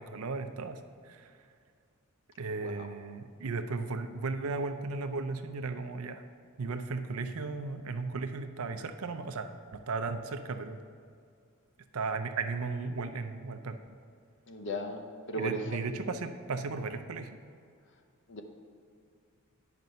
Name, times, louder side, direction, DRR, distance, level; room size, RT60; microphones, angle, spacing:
voice 1, 0.0-1.3 2.4-6.2 6.6-10.8 11.9-13.8 15.4-17.4, right 4 dB, 90° right, 8 dB, 0.6 m, -36 dB
voice 2, 14.5-15.6 18.3-18.4, equal, 60° left, 5 dB, 0.8 m, -36 dB
9.4 x 5.1 x 5.5 m, 2.3 s
head